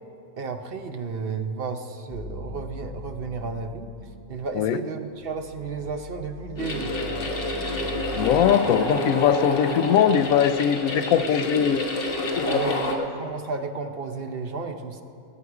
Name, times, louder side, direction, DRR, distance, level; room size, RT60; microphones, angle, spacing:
voice 1, 0.4-3.9 4.3-6.9 12.5-15.0, right 4 dB, 50° right, 7 dB, 0.9 m, -32 dB
sound 1, 2.1-4.8 5.1-8.5, left 2 dB, 60° left, 2.3 m, -40 dB
sound 2, 6.6-12.9, left 1 dB, 45° left, 1.4 m, -28 dB
voice 2, 8.2-11.8 12.3-12.6, left 9 dB, 80° left, 11 dB, 1.0 m, -21 dB
20.5 x 8.3 x 4.7 m, 2.8 s
omnidirectional pair, 1.4 m